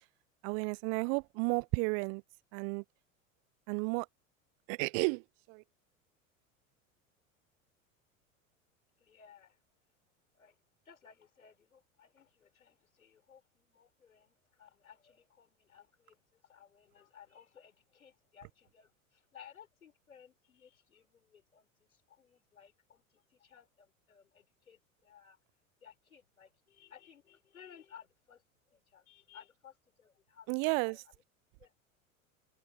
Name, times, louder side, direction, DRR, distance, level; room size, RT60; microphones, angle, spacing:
voice 1, 0.4-2.2 2.5-2.8 3.7-4.1 4.7-5.2 5.5-5.6 30.5-31.0, right 37 dB, 45° right, 0.4 m, -32 dB
voice 2, 9.0-9.6 10.3-25.4 25.8-28.4 28.7-31.1 31.6-31.8, left 8 dB, 90° left, 4.5 m, -59 dB
hypercardioid pair, 85°, 41 cm